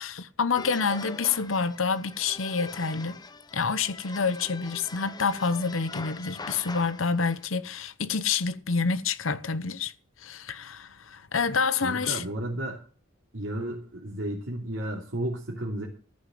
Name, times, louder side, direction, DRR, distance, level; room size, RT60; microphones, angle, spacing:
voice 1, 0.0-3.2 3.5-9.9 10.2-12.2, left 5 dB, 85° left, 0.9 m, -28 dB
sound 1, 0.5-7.4, left 3 dB, 20° left, 0.7 m, -43 dB
voice 2, 11.8-12.8 13.3-15.9, right 1 dB, 70° right, 3.1 m, -33 dB
14.5 x 6.7 x 7.8 m
head